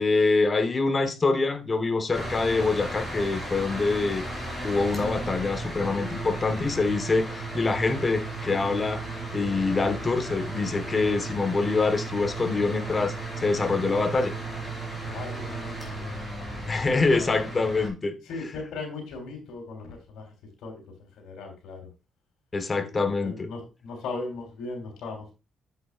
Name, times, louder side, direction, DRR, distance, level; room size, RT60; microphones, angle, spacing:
voice 1, 0.0-4.2 4.6-9.0 9.3-14.3 16.7-18.2 22.5-23.5, left 3 dB, 30° left, 1.2 m, -25 dB
sound 1, 2.1-17.9, right 2 dB, ahead, 4.2 m, -35 dB
voice 2, 15.0-16.3 17.1-17.5 18.2-20.3 20.6-20.8 21.2-21.9 22.8-25.3, left 3 dB, 80° left, 3.4 m, -38 dB
8.0 x 8.0 x 2.4 m
cardioid pair, 90°, 0 cm